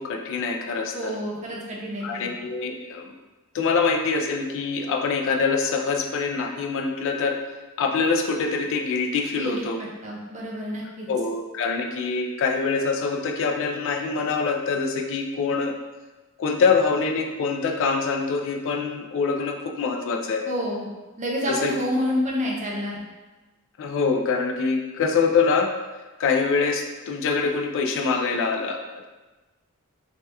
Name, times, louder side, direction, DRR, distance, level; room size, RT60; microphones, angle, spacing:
voice 1, 0.0-1.2 2.0-3.1 3.5-7.4 7.8-9.8 11.1-15.8 16.4-20.5 21.5-21.7 23.8-25.7 26.2-29.1, left 4 dB, 60° left, 3 dB, 0.3 m, -24 dB
voice 2, 0.9-2.3 9.3-11.1 20.5-20.9 21.2-23.0, equal, 35° right, -3 dB, 0.6 m, -28 dB
2.8 x 2.2 x 3.3 m, 1.2 s
head